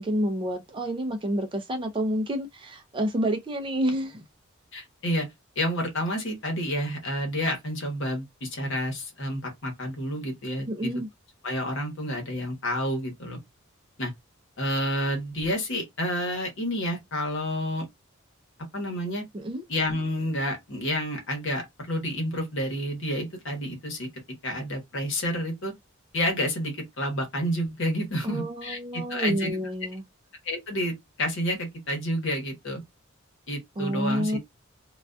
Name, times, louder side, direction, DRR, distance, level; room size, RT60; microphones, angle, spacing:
voice 1, 0.0-4.2 10.7-11.1 19.3-19.6 28.2-30.0 33.8-34.4, equal, 25° right, 0.4 m, -29 dB
voice 2, 4.7-5.3 5.6-10.9 11.4-13.4 14.0-14.1 14.6-17.9 18.7-19.2 19.7-24.1 24.4-25.7 26.1-29.6 30.4-32.8 33.5-34.4, equal, 65° left, 1.0 m, -29 dB
2.3 x 2.2 x 2.4 m
head